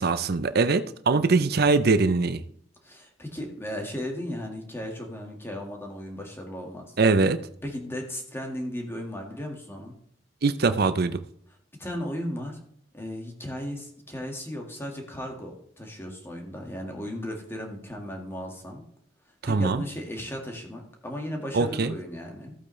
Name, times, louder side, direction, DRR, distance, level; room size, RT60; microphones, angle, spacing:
voice 1, 0.0-2.4 7.0-7.4 10.4-11.2 19.4-19.8 21.5-21.9, right 3 dB, 60° right, 0.6 m, -22 dB
voice 2, 2.8-7.0 7.6-10.0 11.8-12.6 12.9-18.8 19.4-22.6, equal, 15° left, 1.8 m, -36 dB
14.5 x 8.5 x 3.2 m
head